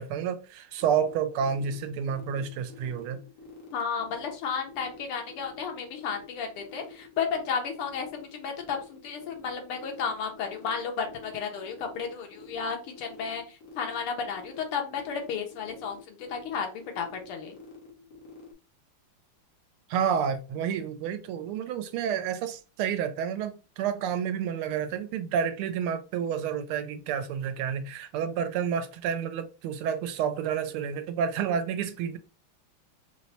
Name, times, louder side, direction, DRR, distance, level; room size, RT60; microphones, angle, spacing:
voice 1, 0.0-3.2 19.9-32.2, right 7 dB, 85° right, 1.5 m, -30 dB
sound 1, 0.8-18.5, equal, 55° left, 1.5 m, -49 dB
voice 2, 3.7-17.6, left 6 dB, 85° left, 1.9 m, -33 dB
4.5 x 2.1 x 4.1 m
omnidirectional pair, 2.4 m